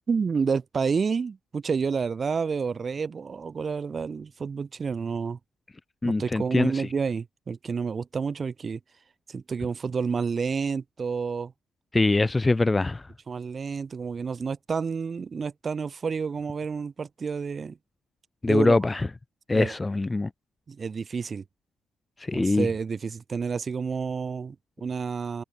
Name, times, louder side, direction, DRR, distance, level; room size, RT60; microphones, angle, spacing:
voice 1, 0.0-5.4 6.0-8.8 9.3-11.5 13.3-17.8 18.5-18.8 19.5-19.7 20.7-21.4 22.3-25.4, right 5 dB, 30° right, 2.0 m, -29 dB
voice 2, 6.0-6.9 11.9-13.0 18.4-19.1 19.5-20.3 22.2-22.7, left 2 dB, 15° left, 0.4 m, -23 dB
cardioid pair, 145°, 0 cm